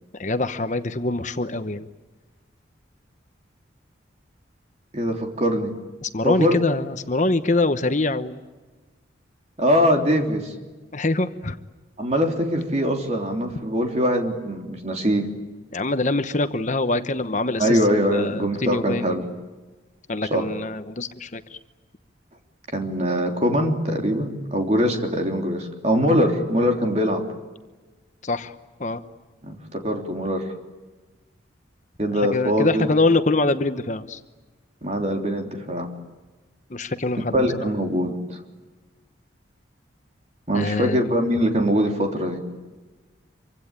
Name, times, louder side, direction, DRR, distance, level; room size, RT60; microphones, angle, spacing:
voice 1, 0.2-1.9 6.0-8.4 10.9-11.6 15.7-17.8 18.1-19.0 20.1-21.6 28.2-28.5 28.8-29.0 32.2-34.2 36.7-37.7 40.5-41.0, left 2 dB, 40° left, 9 dB, 1.0 m, -24 dB
voice 2, 4.9-5.7 6.2-6.6 9.6-10.5 12.0-15.3 17.6-19.3 20.3-20.5 22.7-27.2 29.4-30.5 32.0-32.9 34.8-35.9 37.3-38.4 40.5-42.4, equal, 35° right, 3 dB, 3.4 m, -22 dB
26.5 x 24.5 x 8.9 m, 1.3 s
head